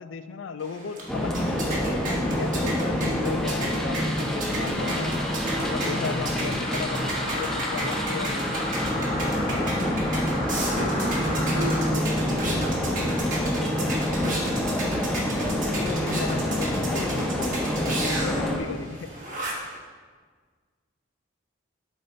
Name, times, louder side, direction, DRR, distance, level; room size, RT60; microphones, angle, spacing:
voice 1, 0.0-1.7 2.2-5.1 5.6-8.7 13.9-14.1 15.6-17.5 17.8-19.2, left 5 dB, 75° left, 11 dB, 0.4 m, -36 dB
sound 1, 0.6-19.8, right 1 dB, 45° right, 1.3 m, -33 dB
sound 2, 1.1-18.6, left 1 dB, ahead, 0.5 m, -27 dB
voice 2, 2.7-3.1 6.2-6.7 9.5-10.0 10.5-15.2 18.5-18.9, right 1 dB, 90° right, 0 dB, 1.0 m, -36 dB
sound 3, 4.8-11.9, left 1 dB, 45° left, 1.7 m, -34 dB
7.6 x 3.6 x 4.0 m, 1.5 s
head